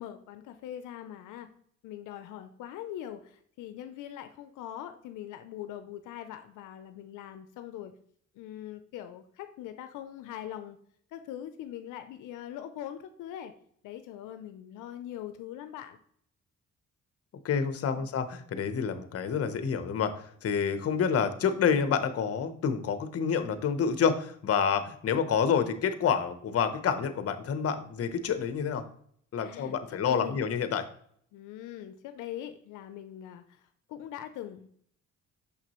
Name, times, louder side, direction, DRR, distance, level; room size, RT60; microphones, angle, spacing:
voice 1, 0.0-1.5 1.8-7.9 8.3-10.8 11.1-13.5 13.8-16.0 17.8-18.1 29.4-29.8 30.0-30.4 31.3-34.8, left 11 dB, 85° left, 9 dB, 0.5 m, -42 dB
voice 2, 17.4-28.9 29.3-30.9, left 7 dB, 50° left, 10 dB, 0.8 m, -28 dB
6.2 x 5.8 x 3.0 m, 0.62 s
cardioid pair, 90°, 30 cm